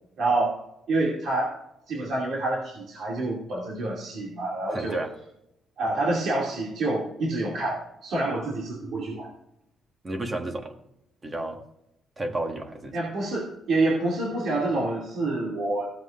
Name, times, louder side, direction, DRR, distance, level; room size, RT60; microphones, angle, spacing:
voice 1, 0.2-0.5 0.9-1.5 1.9-5.0 5.8-9.3 12.9-15.9, right 2 dB, 70° right, -3 dB, 2.5 m, -27 dB
voice 2, 4.7-5.1 10.0-10.7 11.2-11.6 12.2-13.0, right 2 dB, 25° right, 4 dB, 1.6 m, -31 dB
15.5 x 7.8 x 2.5 m, 0.82 s
cardioid pair, 90°, 0 cm